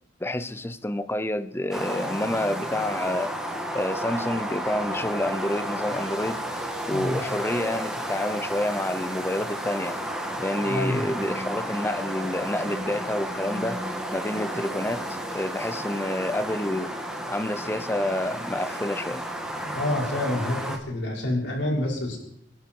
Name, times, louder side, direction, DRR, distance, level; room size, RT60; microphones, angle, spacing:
voice 1, 0.2-3.3 3.7-10.0 10.4-13.8 14.1-15.0 15.3-16.9 17.3-19.3, left 1 dB, 15° left, 0.7 m, -28 dB
sound 1, 1.7-20.8, equal, 5° right, 2.1 m, -32 dB
voice 2, 10.6-11.0 19.6-22.2, left 1 dB, 80° left, 5.9 m, -28 dB
26.5 x 11.5 x 4.7 m
head